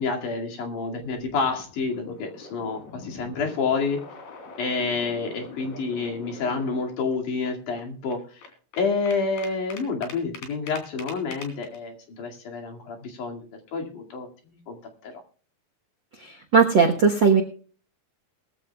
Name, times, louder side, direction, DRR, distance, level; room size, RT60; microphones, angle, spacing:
voice 1, 0.0-4.0 4.6-8.4 8.8-13.5 13.7-14.8 15.0-15.1, left 4 dB, 65° left, 2 dB, 3.7 m, -29 dB
sound 1, 0.9-7.2 7.4-7.5 7.8-11.8, left 4 dB, 85° left, 4.6 m, -43 dB
voice 2, 16.2-17.4, right 5 dB, 80° right, 2 dB, 1.0 m, -18 dB
20.0 x 13.5 x 2.3 m, 0.41 s
omnidirectional pair, 4.0 m